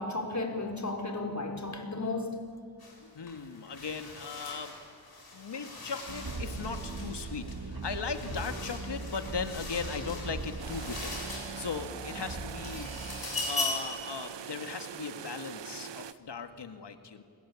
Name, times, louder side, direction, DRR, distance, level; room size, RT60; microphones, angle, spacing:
voice 1, 0.0-2.4, left 2 dB, 40° left, 4 dB, 4.6 m, -34 dB
sound 1, 2.8-3.0 3.3-11.9 12.3-14.0, left 2 dB, 55° left, 7.9 m, -40 dB
voice 2, 3.0-4.8 5.3-12.9 13.5-17.2, left 5 dB, 75° left, 8 dB, 2.2 m, -38 dB
sound 2, 6.1-13.3, right 2 dB, 60° right, 3.2 m, -40 dB
sound 3, 10.6-16.1, right 9 dB, 80° right, 0.9 m, -43 dB
30.0 x 21.0 x 8.7 m, 2.2 s
cardioid pair, 55°, 42 cm